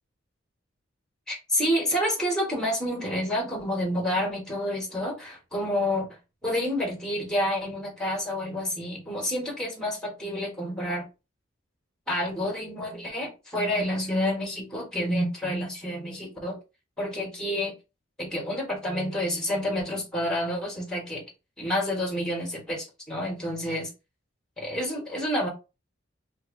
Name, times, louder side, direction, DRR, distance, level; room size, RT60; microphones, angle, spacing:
voice 1, 1.3-11.0 12.1-16.6 17.0-17.7 18.2-21.2 21.6-23.9 24.6-25.5, equal, 5° left, 1.4 m, -29 dB
2.9 x 2.6 x 3.7 m
head